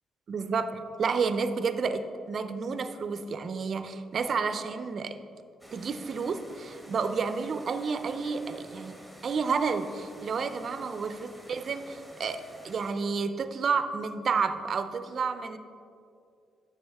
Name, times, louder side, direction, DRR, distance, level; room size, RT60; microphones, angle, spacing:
voice 1, 0.3-5.2 5.7-9.0 9.2-15.6, right 5 dB, 50° right, 10 dB, 0.5 m, -30 dB
sound 1, 5.6-12.9, equal, 5° left, 1.4 m, -50 dB
9.8 x 7.2 x 3.5 m, 2.4 s
cardioid pair, 90°, 0 cm